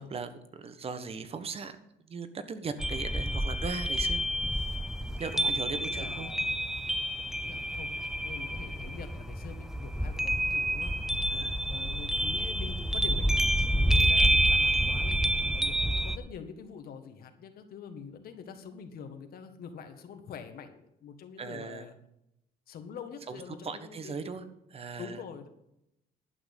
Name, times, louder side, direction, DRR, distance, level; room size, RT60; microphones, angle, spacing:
voice 1, 0.0-1.8 2.0-4.2 5.2-6.3 11.3-11.6 21.4-21.9 23.3-24.4 24.7-25.2, right 5 dB, 35° right, 10 dB, 1.3 m, -38 dB
sound 1, 2.8-16.2, right 1 dB, ahead, 0.6 m, -28 dB
voice 2, 5.4-6.5 7.2-7.9 8.2-11.0 11.7-13.4 13.8-15.2 15.5-21.9 22.7-24.5 25.0-25.5, left 6 dB, 60° left, 7 dB, 1.8 m, -45 dB
11.5 x 6.1 x 8.3 m, 0.81 s
cardioid pair, 110°, 17 cm